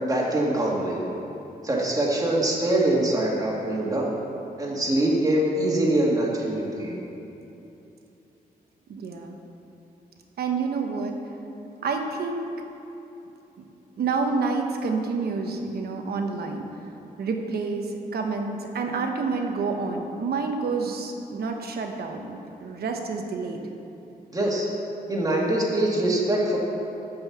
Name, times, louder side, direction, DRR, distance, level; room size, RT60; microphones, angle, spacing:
voice 1, 0.1-1.0 1.6-4.2 4.6-7.0 24.3-24.7 25.1-26.6, right 1 dB, 25° right, -3 dB, 2.0 m, -23 dB
voice 2, 8.9-9.3 10.4-11.1 11.8-12.5 14.0-16.6 17.2-17.9 18.1-23.6, right 4 dB, 85° right, 3 dB, 1.1 m, -28 dB
12.5 x 5.5 x 7.1 m, 2.9 s
wide cardioid pair, 140°, 16 cm